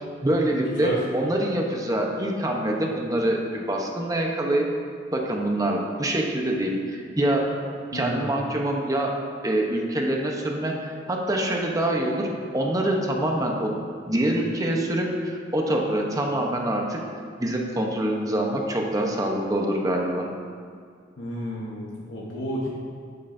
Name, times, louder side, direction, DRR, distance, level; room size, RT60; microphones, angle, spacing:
voice 1, 0.2-4.7 5.1-7.5 7.9-9.1 9.4-12.3 12.5-13.7 14.1-17.0 17.4-20.3, right 1 dB, 20° right, 0 dB, 0.9 m, -25 dB
voice 2, 7.9-8.3 21.2-22.7, equal, 75° left, -5 dB, 1.2 m, -31 dB
11.0 x 9.3 x 2.7 m, 2.1 s
head